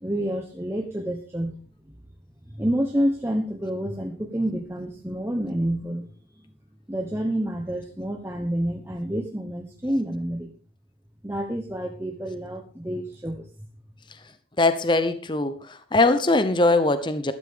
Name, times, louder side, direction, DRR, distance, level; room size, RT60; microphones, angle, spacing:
voice 1, 0.0-1.6 2.6-6.1 6.9-10.5 11.2-13.5, equal, 15° right, 2 dB, 1.1 m, -28 dB
voice 2, 14.6-17.3, left 2 dB, 25° left, 11 dB, 0.8 m, -21 dB
13.0 x 12.5 x 3.7 m, 0.39 s
head